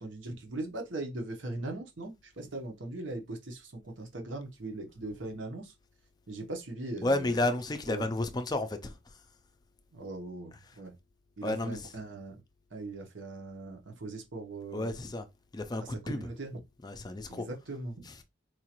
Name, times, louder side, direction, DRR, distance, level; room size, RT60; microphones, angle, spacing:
voice 1, 0.0-5.7 6.3-7.5 7.9-8.1 9.9-10.9 11.4-12.4 12.7-15.0 15.8-16.6 17.3-18.0, right 2 dB, 75° right, 1.0 m, -40 dB
voice 2, 7.0-8.9 11.4-11.8 14.7-15.2 15.5-16.2 16.8-17.5, left 2 dB, 20° left, 0.4 m, -31 dB
4.6 x 2.4 x 2.9 m
head